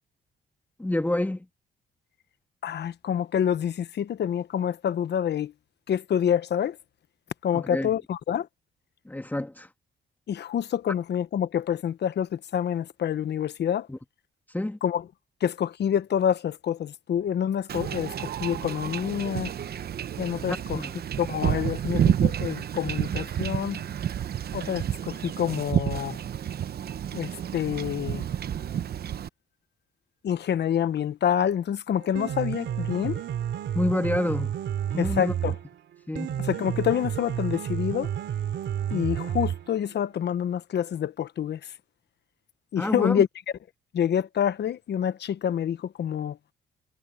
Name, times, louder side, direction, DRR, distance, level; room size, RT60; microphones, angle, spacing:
voice 1, 0.8-1.4 7.5-7.9 9.1-9.7 13.9-14.0 14.5-14.8 20.7-20.9 33.7-34.5 34.9-35.5 36.1-36.4 42.8-43.2, left 1 dB, 10° left, 2.2 m, -28 dB
voice 2, 2.6-5.5 5.9-6.8 7.4-8.5 10.3-13.9 14.8-15.0 15.4-19.5 20.2-20.8 21.2-23.8 24.5-26.2 27.1-28.2 30.2-33.2 35.0-35.5 36.4-38.1 38.9-41.6 42.7-43.3 43.9-46.4, left 9 dB, 60° left, 1.1 m, -27 dB
Wind / Ocean / Boat Water vehicle, 17.7-29.3, right 9 dB, 55° right, 0.9 m, -30 dB
Piano, 32.0-40.0, right 10 dB, 70° right, 3.4 m, -31 dB
cardioid pair, 90°, 20 cm